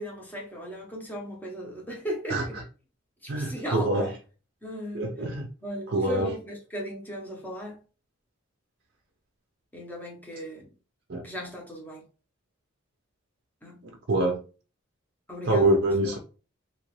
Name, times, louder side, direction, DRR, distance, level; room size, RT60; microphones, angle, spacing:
voice 1, 0.0-2.6 3.2-4.1 4.6-5.0 5.6-7.8 9.7-10.7 11.2-12.1 13.6-13.9 15.3-15.9, equal, 10° left, 0.8 m, -37 dB
voice 2, 2.3-2.6 3.3-4.2 4.9-5.5 5.9-6.3 11.1-11.3 13.8-14.4 15.4-16.2, right 2 dB, 50° right, 0.4 m, -25 dB
2.9 x 2.4 x 3.1 m
head